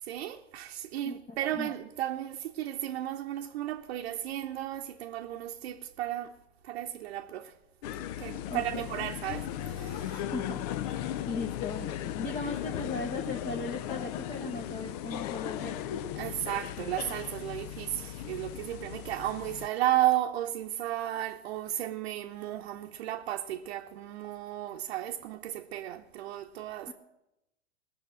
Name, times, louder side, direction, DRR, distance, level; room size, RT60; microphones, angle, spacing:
voice 1, 0.0-6.4 6.6-7.6 8.2-10.2 16.2-26.9, right 13 dB, 60° right, 0.9 m, -34 dB
voice 2, 1.0-1.7 8.5-8.9 10.0-15.8 26.9-27.0, left 3 dB, 20° left, 1.0 m, -38 dB
sound 1, 7.8-19.7, left 11 dB, 35° left, 0.4 m, -37 dB
19.5 x 6.6 x 7.7 m
hypercardioid pair, 140°, 36 cm